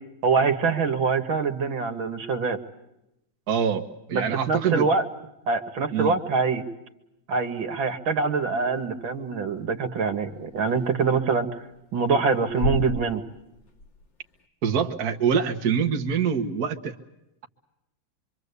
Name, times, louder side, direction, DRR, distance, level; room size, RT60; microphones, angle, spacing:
voice 1, 0.2-2.6 4.1-5.0 5.5-6.6 7.3-11.5 11.9-13.2, right 4 dB, 80° right, 6 dB, 2.4 m, -24 dB
voice 2, 3.5-3.8 4.1-4.9 5.9-6.2 14.6-16.9, right 7 dB, 50° right, 5 dB, 1.8 m, -24 dB
Creaking wooden floor and heavy breathing, 8.5-14.5, equal, 65° left, 3.2 m, -36 dB
25.5 x 25.0 x 8.3 m, 0.86 s
omnidirectional pair, 2.2 m